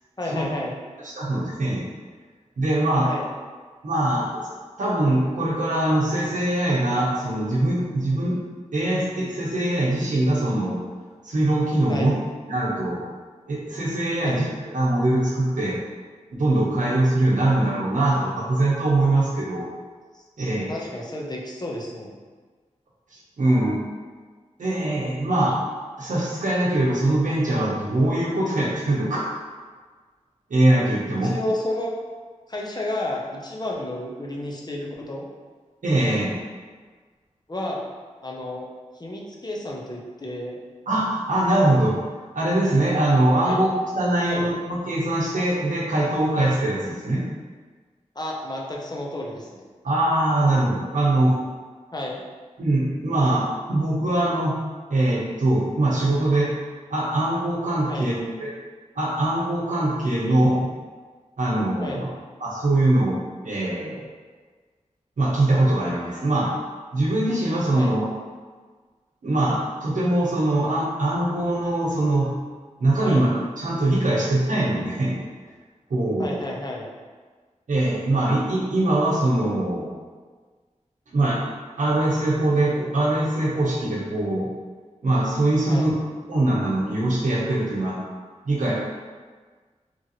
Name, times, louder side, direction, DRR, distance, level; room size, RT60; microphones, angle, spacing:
voice 1, 0.2-0.8 3.0-3.3 11.9-12.1 14.2-14.5 20.1-20.2 20.7-22.2 31.2-31.9 32.5-35.3 37.5-37.8 38.2-38.7 39.0-40.6 43.4-43.7 44.2-44.5 48.2-49.6 51.9-52.2 57.9-58.1 61.8-62.0 67.7-68.0 73.0-73.3 76.2-76.9 85.7-85.9, left 1 dB, 30° left, -2 dB, 0.6 m, -31 dB
voice 2, 1.0-1.9 2.6-3.1 3.8-4.3 4.8-8.4 8.7-10.8 11.2-12.1 12.5-13.0 13.5-14.5 14.7-15.8 16.3-19.7 20.4-20.9 23.1-23.8 24.6-25.6 26.0-29.3 30.5-31.4 35.8-36.4 40.9-42.0 42.3-47.2 49.8-51.4 52.6-54.6 54.9-56.5 56.9-58.5 59.0-60.7 61.4-62.1 62.4-63.2 63.4-64.0 65.2-66.5 66.9-68.0 69.2-72.3 72.8-73.3 73.6-75.2 75.9-76.4 77.7-79.9 81.1-81.4 81.8-84.5 85.0-85.9 86.3-88.0 88.4-88.7, right 1 dB, 85° right, -5 dB, 0.7 m, -22 dB
3.0 x 2.5 x 2.8 m, 1.5 s
wide cardioid pair, 50°, 13 cm